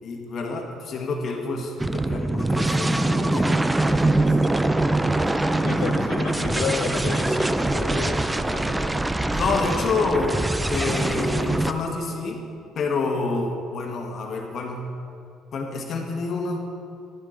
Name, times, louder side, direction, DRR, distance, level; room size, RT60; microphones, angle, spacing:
voice 1, 0.0-4.4 9.3-12.4 12.7-14.9 15.5-16.6, left 3 dB, 45° left, 1.2 m, -28 dB
sound 1, 1.8-11.7, right 2 dB, 10° right, 0.3 m, -23 dB
voice 2, 5.3-9.1, left 8 dB, 80° left, 0.6 m, -33 dB
11.5 x 7.4 x 3.8 m
cardioid pair, 145°, 0 cm